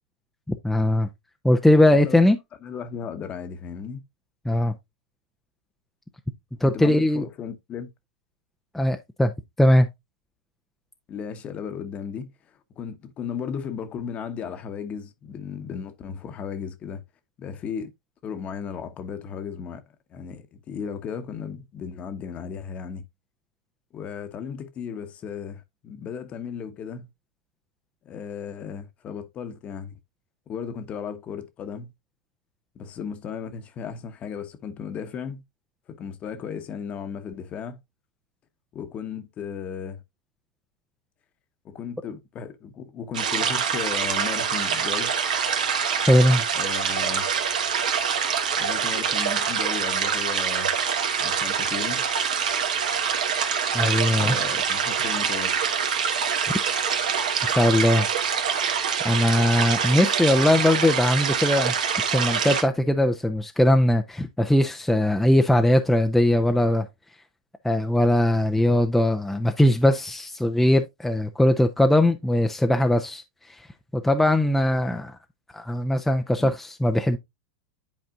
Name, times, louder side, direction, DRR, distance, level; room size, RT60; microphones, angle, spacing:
voice 1, 0.5-1.1 1.4-2.4 4.5-4.7 6.6-7.2 8.7-9.3 9.6-9.9 46.1-46.4 53.7-54.4 57.4-58.1 59.0-61.7 62.1-66.9 67.6-73.2 73.9-75.2 75.5-77.2, left 1 dB, 5° left, 0.6 m, -20 dB
voice 2, 2.6-4.0 6.5-7.9 11.1-12.3 12.8-17.0 17.4-17.9 18.2-19.8 20.1-23.1 23.9-27.1 28.0-30.0 30.5-31.9 32.7-35.4 35.9-37.8 38.7-40.0 41.6-45.1 46.5-47.3 48.6-50.7 51.2-52.1 54.2-55.7 76.4-76.5, left 7 dB, 30° left, 1.0 m, -35 dB
sound 1, 43.1-62.6, right 7 dB, 80° right, 1.3 m, -25 dB
10.5 x 4.2 x 2.5 m
hypercardioid pair, 105°, 4 cm